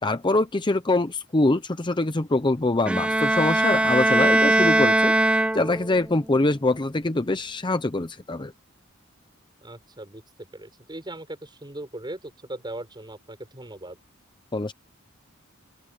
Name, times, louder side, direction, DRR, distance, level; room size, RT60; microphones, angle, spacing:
voice 1, 0.0-5.1 5.5-8.5 14.5-14.7, left 2 dB, 25° left, 0.7 m, -24 dB
Bowed string instrument, 2.9-6.0, right 1 dB, 5° right, 0.4 m, -20 dB
voice 2, 9.6-14.0, right 1 dB, 20° right, 6.3 m, -39 dB
open air
head